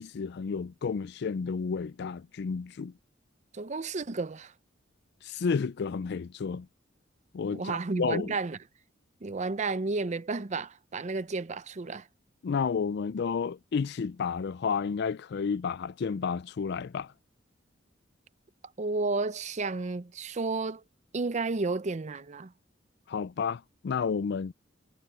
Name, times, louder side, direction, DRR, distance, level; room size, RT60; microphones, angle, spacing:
voice 1, 0.0-2.9 5.2-6.7 7.3-8.4 12.4-17.1 23.1-24.5, left 5 dB, 60° left, 0.4 m, -31 dB
voice 2, 3.5-4.5 7.5-8.6 9.2-12.1 18.8-20.8 21.1-22.5, right 3 dB, 40° right, 0.6 m, -32 dB
head